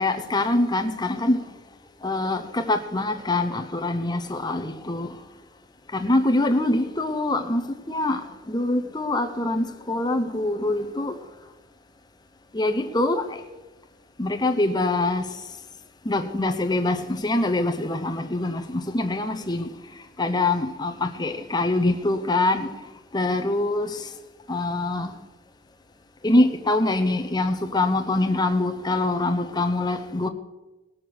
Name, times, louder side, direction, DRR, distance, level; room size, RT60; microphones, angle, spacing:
voice 1, 0.0-1.4 2.0-5.1 5.9-8.2 8.5-11.1 12.5-13.4 14.2-15.3 16.1-19.7 20.2-22.7 23.1-24.1 24.5-25.1 26.2-30.3, left 2 dB, 20° left, 0.8 m, -24 dB
18.0 x 6.5 x 6.2 m
head